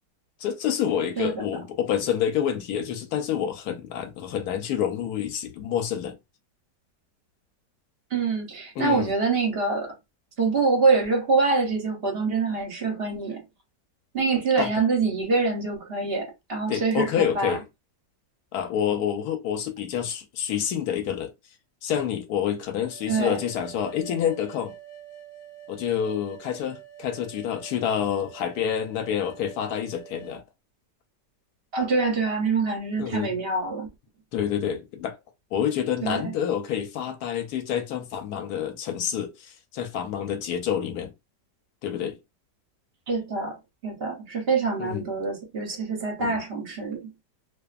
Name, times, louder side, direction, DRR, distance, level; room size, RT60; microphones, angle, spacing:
voice 1, 0.4-6.2 8.8-9.1 14.6-14.7 16.7-17.6 18.5-21.3 21.8-24.7 25.7-30.4 33.0-33.3 34.3-35.2 35.5-41.1 41.8-42.2 44.8-45.1 46.2-46.4, left 9 dB, 70° left, 1.0 m, -28 dB
voice 2, 8.1-9.9 10.4-13.4 14.1-17.6 23.1-23.4 31.7-33.9 36.0-36.3 43.1-43.5 43.8-47.1, right 4 dB, 50° right, 0.7 m, -25 dB
sound 1, 22.8-30.4, right 11 dB, 30° left, 0.5 m, -46 dB
2.5 x 2.4 x 2.4 m
omnidirectional pair, 1.9 m